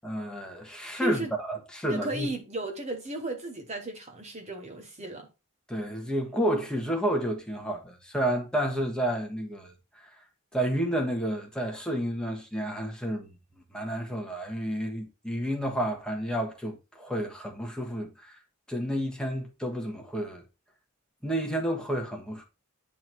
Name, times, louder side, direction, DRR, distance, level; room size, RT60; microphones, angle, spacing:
voice 1, 0.0-2.3 5.7-10.2 10.5-13.3 13.7-18.4 18.7-20.4 21.2-22.4, right 1 dB, 5° left, 1.4 m, -31 dB
voice 2, 1.0-1.3 1.9-5.3, right 1 dB, 30° right, 1.1 m, -34 dB
9.3 x 3.9 x 4.6 m
head